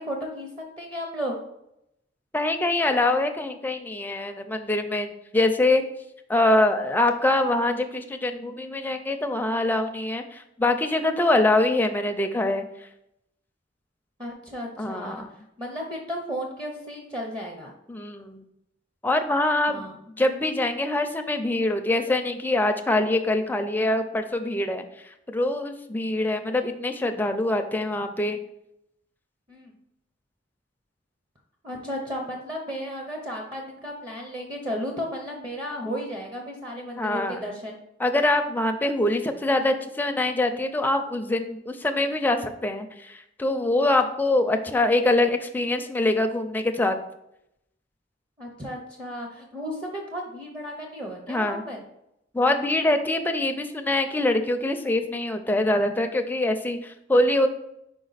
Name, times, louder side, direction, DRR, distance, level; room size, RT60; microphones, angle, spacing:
voice 1, 0.0-1.4 14.2-17.7 19.7-19.9 29.5-29.7 31.6-37.8 48.4-51.8, equal, 25° right, 1 dB, 0.7 m, -34 dB
voice 2, 2.3-5.8 6.3-12.6 14.8-15.3 17.9-18.4 19.0-19.9 20.2-24.8 25.3-28.4 37.0-37.4 38.0-47.0 51.3-51.6 52.3-57.5, left 2 dB, 10° left, 6 dB, 0.4 m, -24 dB
5.1 x 4.7 x 4.0 m, 0.81 s
head